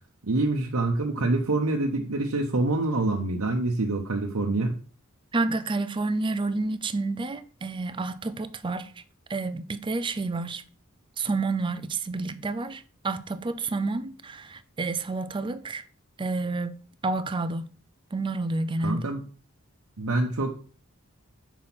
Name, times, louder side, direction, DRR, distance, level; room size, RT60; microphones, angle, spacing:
voice 1, 0.2-4.8 18.8-19.2 20.0-20.5, right 2 dB, 85° right, 0.9 m, -26 dB
voice 2, 5.3-8.9 9.3-10.6 11.2-15.8 16.2-17.7 18.1-19.1, right 3 dB, 25° right, 0.5 m, -29 dB
6.0 x 4.6 x 5.8 m
head